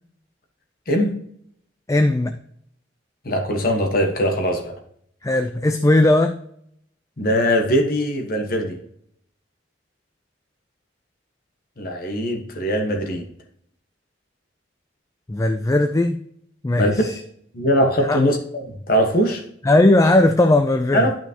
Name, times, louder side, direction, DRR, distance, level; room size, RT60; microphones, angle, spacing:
voice 1, 0.9-1.2 3.2-4.7 7.2-8.8 11.8-13.2 16.8-17.0 17.5-19.4 20.9-21.1, equal, 50° left, 3 dB, 1.3 m, -21 dB
voice 2, 1.9-2.4 5.2-6.3 15.3-16.2 16.6-17.1 18.1-18.2 19.6-21.1, left 2 dB, 15° left, 7 dB, 0.4 m, -17 dB
11.5 x 5.9 x 2.9 m, 0.68 s
head